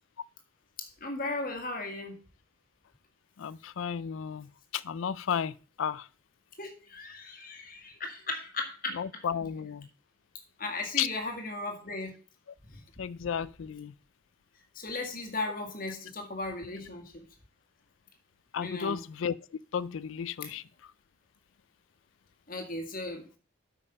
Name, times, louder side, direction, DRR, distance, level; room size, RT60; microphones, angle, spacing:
voice 1, 0.8-2.2 6.6-9.0 10.6-12.1 14.8-17.2 18.6-19.0 22.5-23.3, left 2 dB, 45° left, 1.8 m, -36 dB
voice 2, 3.4-6.1 8.9-9.9 11.0-11.1 13.0-13.9 18.5-19.4 19.7-20.6, left 8 dB, 75° left, 0.4 m, -33 dB
8.4 x 5.4 x 5.5 m
head